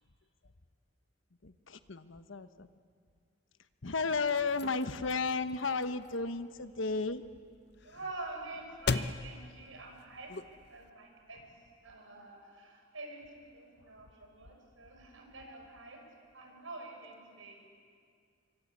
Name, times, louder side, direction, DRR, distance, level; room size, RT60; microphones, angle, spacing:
voice 1, 1.4-2.7 3.8-7.2, left 4 dB, 75° left, 11 dB, 1.1 m, -33 dB
sound 1, 3.8-10.9, left 4 dB, 55° left, 0.7 m, -41 dB
voice 2, 7.8-10.3 10.7-11.4 11.8-16.1 16.3-17.6, right 2 dB, 80° right, 2 dB, 5.8 m, -47 dB
26.5 x 24.0 x 8.4 m, 2.2 s
head